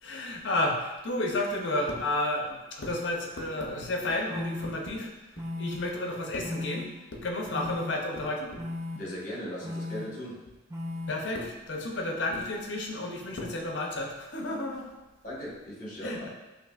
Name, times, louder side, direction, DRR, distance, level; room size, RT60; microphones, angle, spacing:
voice 1, 0.0-8.6 11.1-14.9 16.0-16.3, left 1 dB, 65° left, 1 dB, 0.6 m, -32 dB
sound 1, 3.6-3.7 4.3-4.7 5.4-5.8 6.4-6.8 7.5-7.9 8.6-9.0 9.6-10.0 10.7-11.1, left 2 dB, 15° right, 0.3 m, -35 dB
voice 2, 9.0-10.4 15.2-16.3, equal, 40° left, -5 dB, 1.1 m, -38 dB
5.9 x 2.6 x 2.3 m, 1.1 s
head